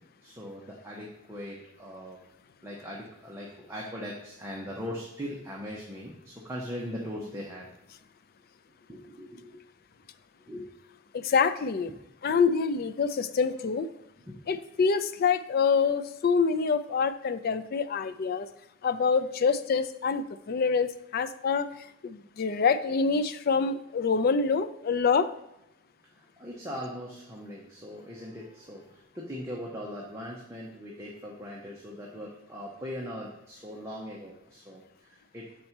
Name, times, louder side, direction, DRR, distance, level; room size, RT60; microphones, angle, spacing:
voice 1, 0.2-2.2 2.6-7.7 8.9-9.6 10.5-10.7 12.3-12.4 14.3-14.4 26.4-35.5, equal, 15° right, -3 dB, 0.8 m, -40 dB
voice 2, 11.1-11.9 12.2-13.9 14.5-18.5 18.8-21.7 22.0-25.3, left 5 dB, 45° left, 12 dB, 0.3 m, -26 dB
6.8 x 4.2 x 4.4 m, 0.88 s
head